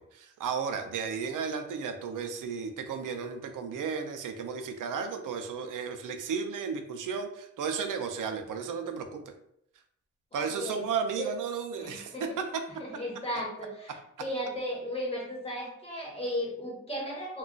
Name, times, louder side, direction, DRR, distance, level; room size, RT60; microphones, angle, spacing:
voice 1, 0.1-9.2 10.3-12.5, right 6 dB, 90° right, 6 dB, 0.5 m, -34 dB
voice 2, 10.3-10.8 11.2-11.3 11.8-12.3 12.8-17.4, equal, 20° left, -5 dB, 1.1 m, -35 dB
2.3 x 2.3 x 3.8 m, 0.73 s
wide cardioid pair, 155°, 31 cm